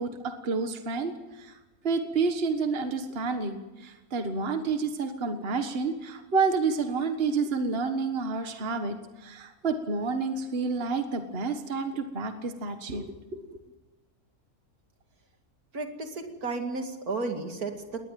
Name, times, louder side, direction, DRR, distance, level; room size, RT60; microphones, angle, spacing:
voice 1, 0.0-1.6 1.8-13.6, right 4 dB, 40° right, 7 dB, 1.7 m, -29 dB
voice 2, 15.7-18.0, right 3 dB, 75° right, 5 dB, 2.8 m, -33 dB
21.0 x 19.0 x 9.2 m, 1.1 s
omnidirectional pair, 1.6 m